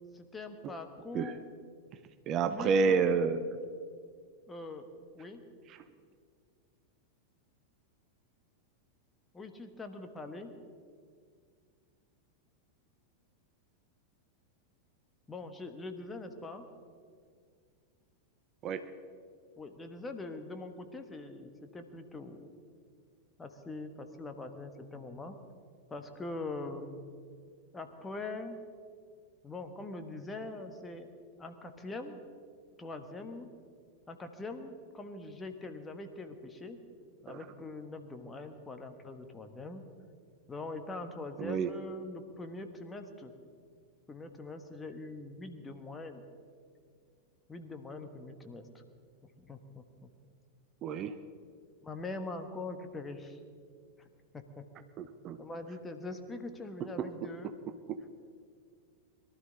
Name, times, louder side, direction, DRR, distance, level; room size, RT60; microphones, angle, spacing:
voice 1, 0.1-1.4 2.5-3.1 4.5-4.9 5.1-5.4 9.3-10.5 15.3-16.7 19.6-22.5 23.4-25.4 25.9-27.0 27.7-28.6 29.4-31.1 31.4-32.2 32.8-33.5 34.1-36.8 37.2-39.8 40.5-43.3 44.1-46.2 47.5-48.8 49.4-50.1 51.8-53.4 54.0-54.1 54.3-54.6 55.4-57.5, left 2 dB, 15° left, 7 dB, 1.3 m, -43 dB
voice 2, 2.3-3.4 18.6-18.8 41.4-41.7 50.8-51.1 55.0-55.4 57.0-57.1, right 5 dB, 35° right, 9 dB, 0.7 m, -29 dB
22.5 x 12.5 x 4.0 m, 2.1 s
figure-of-eight pair, 90°, 0 cm